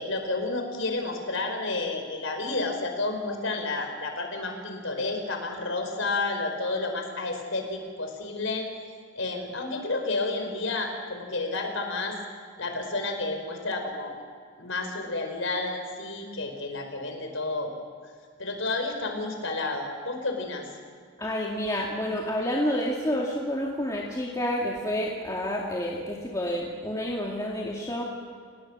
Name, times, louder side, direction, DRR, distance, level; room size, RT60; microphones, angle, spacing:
voice 1, 0.0-8.7 9.2-12.2 12.6-14.2 14.6-17.7 18.4-20.7, left 3 dB, 75° left, 4 dB, 4.8 m, -31 dB
voice 2, 21.2-28.0, equal, 15° left, -3 dB, 2.3 m, -29 dB
29.0 x 19.5 x 6.3 m, 2.1 s
head